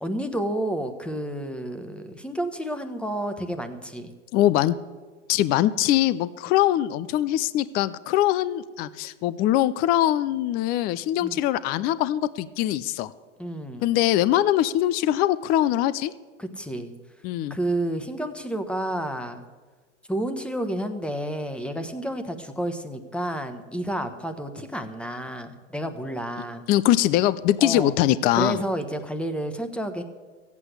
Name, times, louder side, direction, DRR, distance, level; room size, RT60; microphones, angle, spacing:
voice 1, 0.0-4.1 11.2-11.4 13.4-13.9 16.4-16.9 17.5-19.4 20.1-26.6 27.6-27.9 28.3-30.0, right 1 dB, 5° left, 8 dB, 1.1 m, -30 dB
voice 2, 4.3-4.7 5.3-13.1 13.8-16.1 17.2-17.6 26.7-28.6, left 13 dB, 25° left, 17 dB, 0.4 m, -22 dB
14.5 x 8.3 x 7.9 m, 1.4 s
hypercardioid pair, 110°, 37 cm